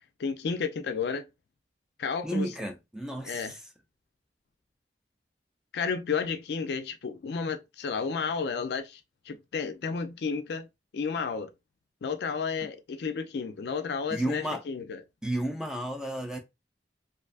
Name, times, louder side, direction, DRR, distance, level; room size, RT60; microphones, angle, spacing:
voice 1, 0.2-1.3 2.0-2.5 3.2-3.5 5.7-9.0 9.3-10.7 10.9-11.5 12.0-15.0, left 5 dB, 65° left, 0.4 m, -32 dB
voice 2, 2.2-3.6 14.1-14.6 15.2-16.4, right 1 dB, 5° right, 0.4 m, -32 dB
2.5 x 2.3 x 2.4 m
head